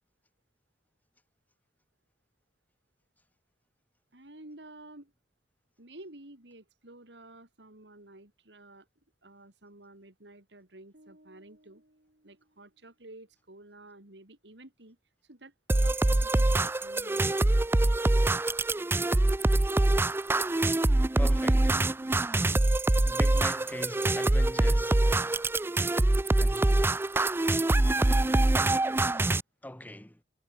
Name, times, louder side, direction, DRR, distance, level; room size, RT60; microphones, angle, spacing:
voice 1, 4.1-5.1 5.8-8.9 9.2-11.8 12.2-15.0 15.2-15.5 15.8-17.2, right 2 dB, 80° right, 3.5 m, -51 dB
sound 1, 10.9-13.1, right 1 dB, 60° right, 7.1 m, -63 dB
sound 2, 15.7-29.4, right 2 dB, 15° right, 0.4 m, -24 dB
voice 2, 21.2-21.8 23.0-25.5 26.4-27.0 29.6-30.2, left 1 dB, 10° left, 1.3 m, -41 dB
head